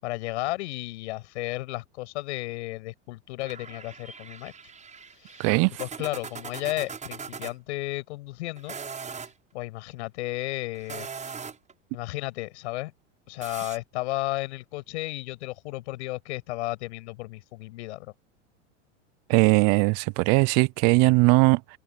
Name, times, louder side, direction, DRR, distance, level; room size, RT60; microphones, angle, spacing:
voice 1, 0.0-4.5 5.2-5.5 5.8-8.8 9.2-9.3 9.5-11.1 11.9-12.9 13.3-18.1, left 19 dB, 65° left, 8.0 m, -33 dB
sound 1, 3.4-7.5 8.6-9.3 10.7-11.7 13.4-13.8, right 5 dB, 20° right, 7.2 m, -40 dB
voice 2, 5.4-5.7 19.3-21.8, right 30 dB, 45° right, 0.6 m, -20 dB
hypercardioid pair, 100°, 36 cm